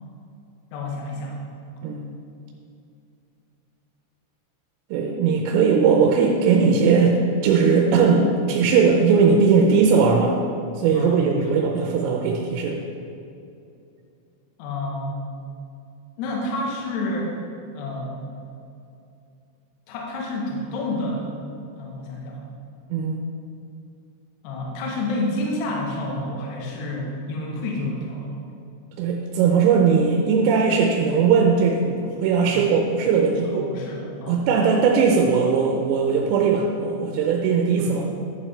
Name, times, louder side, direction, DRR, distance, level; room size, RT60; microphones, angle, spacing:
voice 1, 0.7-1.4 10.9-11.6 14.6-15.3 16.2-17.3 17.8-18.2 19.9-21.3 21.7-22.4 24.4-28.4 32.4-32.7 33.4-34.4 37.8-38.0, left 1 dB, 70° left, -2 dB, 2.9 m, -29 dB
voice 2, 4.9-10.4 10.8-12.8 22.9-23.2 29.0-33.7 34.3-38.0, right 5 dB, 90° right, 0 dB, 3.3 m, -19 dB
11.5 x 7.5 x 3.3 m, 2.6 s
omnidirectional pair, 5.7 m